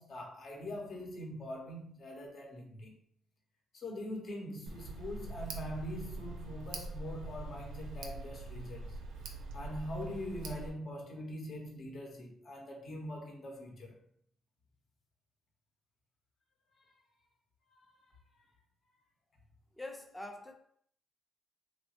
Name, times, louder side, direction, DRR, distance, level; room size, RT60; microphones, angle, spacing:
voice 1, 0.0-2.9 3.7-9.0 9.5-14.0 16.8-16.9 17.7-18.1, equal, 50° left, 0.8 m, -43 dB
Tick, 4.7-10.7, right 2 dB, 80° right, 0.4 m, -43 dB
voice 2, 19.7-20.6, left 2 dB, 15° left, 0.5 m, -44 dB
3.0 x 2.2 x 2.9 m
cardioid pair, 90°, 0 cm